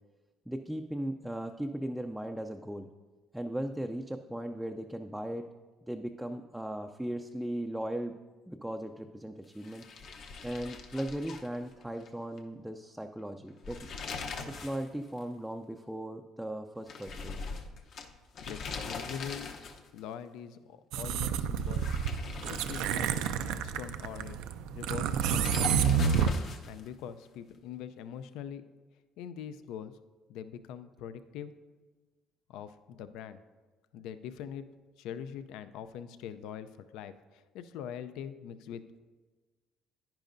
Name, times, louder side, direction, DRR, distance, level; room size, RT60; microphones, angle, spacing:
voice 1, 0.5-2.9 3.3-5.5 5.8-8.1 8.5-9.8 10.4-13.9 14.5-17.5, right 1 dB, 5° right, 4 dB, 0.4 m, -37 dB
sound 1, 9.6-12.1 12.4-12.5 13.5-14.9 15.2-15.3 16.9-20.0 21.6-23.6 25.2-26.9, left 4 dB, 55° left, 0.8 m, -41 dB
voice 2, 18.5-19.5 19.9-21.9 22.5-24.4 24.7-26.3 26.6-28.6 29.2-29.9 30.3-31.5 32.5-33.4 33.9-34.6 35.0-38.8, left 8 dB, 75° left, 12 dB, 0.4 m, -43 dB
sound 2, 20.9-26.3, right 7 dB, 80° right, 0.4 m, -29 dB
10.5 x 10.0 x 2.6 m, 1.3 s
cardioid pair, 120°, 0 cm